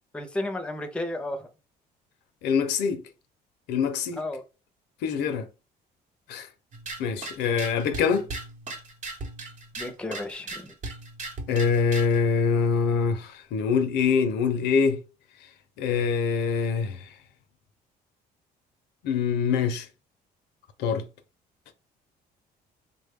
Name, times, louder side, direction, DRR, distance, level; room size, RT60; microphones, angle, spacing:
voice 1, 0.1-1.5 4.1-4.4 9.8-10.7, left 1 dB, 5° left, 0.5 m, -33 dB
voice 2, 2.4-3.0 3.7-4.2 5.0-5.5 6.3-6.5 7.0-8.3 11.5-15.0 15.8-17.1 19.0-19.9 20.8-21.1, left 6 dB, 85° left, 0.6 m, -24 dB
sound 1, 6.7-12.2, right 2 dB, 50° right, 0.8 m, -38 dB
3.5 x 2.2 x 3.5 m
cardioid pair, 110°, 17 cm